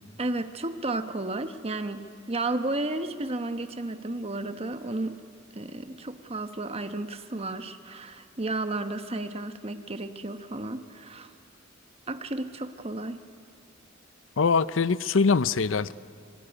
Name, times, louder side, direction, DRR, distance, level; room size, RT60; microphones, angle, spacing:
voice 1, 0.2-5.2 5.5-11.3 12.1-13.2, right 2 dB, 30° right, 8 dB, 1.2 m, -33 dB
voice 2, 14.4-15.9, left 5 dB, 70° left, 17 dB, 0.6 m, -23 dB
25.5 x 21.5 x 9.9 m, 2.3 s
head